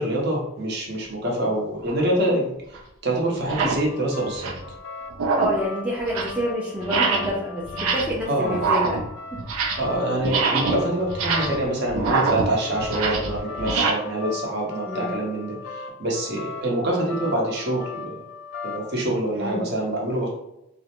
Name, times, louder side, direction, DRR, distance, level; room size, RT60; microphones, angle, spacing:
voice 1, 0.0-2.5 3.0-4.5 8.3-8.7 9.8-18.2 18.6-20.3, right 1 dB, 55° right, -2 dB, 0.7 m, -25 dB
sound 1, 1.8-2.0 2.7-2.8 3.4-3.9 4.2-4.7 5.1-5.7 6.0-6.4 6.8-7.4 7.7-8.2 8.5-9.9 10.2-13.9, right 4 dB, 85° right, 0.4 m, -25 dB
sound 2, 3.7-19.0, left 4 dB, 80° left, 0.3 m, -38 dB
voice 2, 5.4-9.0 14.9-15.1 19.3-19.6, equal, 5° right, -4 dB, 0.3 m, -27 dB
2.4 x 2.0 x 2.8 m, 0.85 s
head